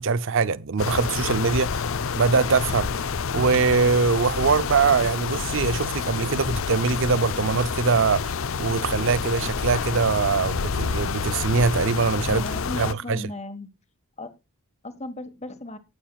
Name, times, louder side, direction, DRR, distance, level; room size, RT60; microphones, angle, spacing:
voice 1, 0.0-1.9 2.1-3.0 3.3-12.4 12.8-13.2, right 4 dB, 60° right, 0.6 m, -22 dB
sound 1, 0.8-12.9, left 5 dB, 65° left, 0.6 m, -28 dB
voice 2, 12.2-13.7 14.2-14.3 14.8-15.8, left 1 dB, 30° left, 1.4 m, -36 dB
19.0 x 7.4 x 2.3 m
head